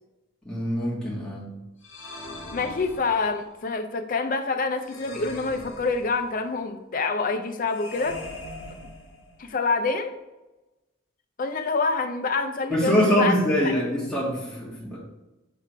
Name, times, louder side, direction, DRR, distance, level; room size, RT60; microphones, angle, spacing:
voice 1, 0.4-1.5 12.7-15.0, equal, 5° left, -9 dB, 1.5 m, -24 dB
sound 1, 1.8-3.5 4.8-6.5 7.7-9.5, left 2 dB, 65° left, 1.2 m, -41 dB
voice 2, 2.5-8.2 9.4-10.2 11.4-13.3, left 4 dB, 40° left, 7 dB, 0.5 m, -26 dB
5.8 x 3.6 x 4.6 m, 1.0 s
head